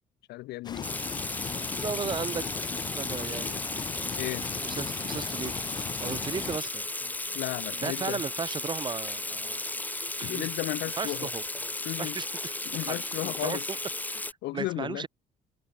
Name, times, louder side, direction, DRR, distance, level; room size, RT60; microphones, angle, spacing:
voice 1, 0.3-0.9 4.2-4.8 7.3-8.2 10.2-11.3 11.9-12.2 12.6-13.7 14.4-15.1, left 18 dB, 80° left, 0.9 m, -34 dB
sound 1, 0.6-6.6, left 6 dB, 25° left, 0.4 m, -38 dB
Water tap faucet / Sink (filling or washing), 0.8-14.3, left 2 dB, 10° left, 1.2 m, -35 dB
voice 2, 1.7-2.5 2.9-3.6 4.6-5.6 6.0-7.1 7.8-9.6 10.2-10.5 11.0-11.4 12.0-13.8 14.1-15.1, right 5 dB, 30° right, 0.9 m, -36 dB
cardioid pair, 110°, 17 cm